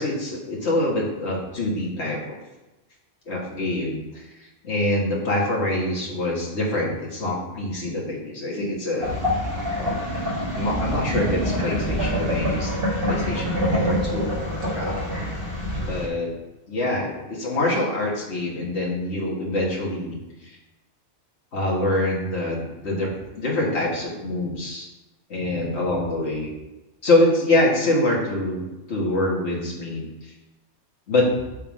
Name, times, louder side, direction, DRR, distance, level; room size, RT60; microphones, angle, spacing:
voice 1, 0.0-2.2 3.3-4.2 4.6-9.2 9.8-10.0 10.5-12.7 13.0-14.9 15.8-16.3 16.7-20.2 21.5-23.1 23.4-24.9 25.3-26.5 27.0-28.6 28.9-30.0 31.1-31.3, left 1 dB, 70° left, -4 dB, 1.9 m, -25 dB
sound 1, 9.0-16.1, equal, 55° right, 1.8 m, -26 dB
6.9 x 3.7 x 6.1 m, 1.0 s
omnidirectional pair, 1.2 m